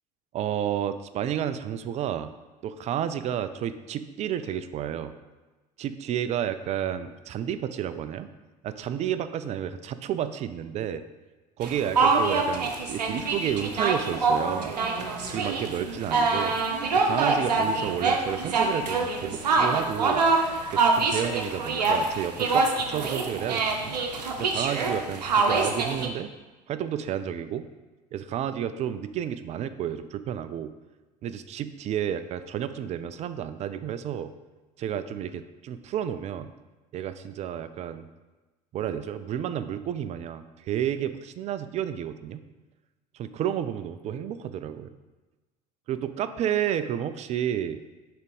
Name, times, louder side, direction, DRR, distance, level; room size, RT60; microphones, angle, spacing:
voice 1, 0.3-2.3 2.6-5.1 5.8-8.3 8.6-11.0 11.6-14.7 15.3-16.6 16.9-20.2 20.7-24.0 24.4-26.3 26.7-27.7 28.1-30.7 31.2-34.3 34.8-36.5 36.9-38.0 38.7-42.4 43.1-44.9 45.9-47.8, right 10 dB, 35° right, 12 dB, 0.4 m, -31 dB
sound 1, 11.6-26.1, right 4 dB, 75° right, 0.7 m, -25 dB
6.6 x 3.4 x 5.2 m, 1.2 s
figure-of-eight pair, 70°, 21 cm